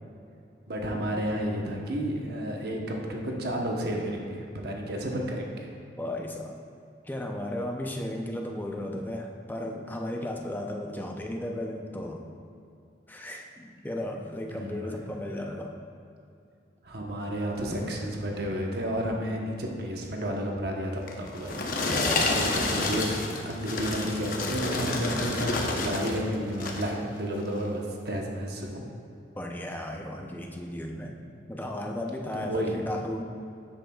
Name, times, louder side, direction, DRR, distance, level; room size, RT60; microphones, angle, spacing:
voice 1, 0.7-5.7 14.5-15.0 16.8-23.1 23.4-28.8 32.3-32.8, equal, 60° right, 0 dB, 1.0 m, -31 dB
voice 2, 6.0-6.6 7.0-12.3 13.1-15.8 21.9-22.5 29.4-31.2 31.5-33.2, left 1 dB, 10° left, 1 dB, 0.6 m, -35 dB
sound 1, 21.1-26.2 26.5-27.0 27.5-27.7, left 2 dB, 50° left, 0.8 m, -29 dB
10.0 x 8.0 x 2.3 m, 2.5 s
head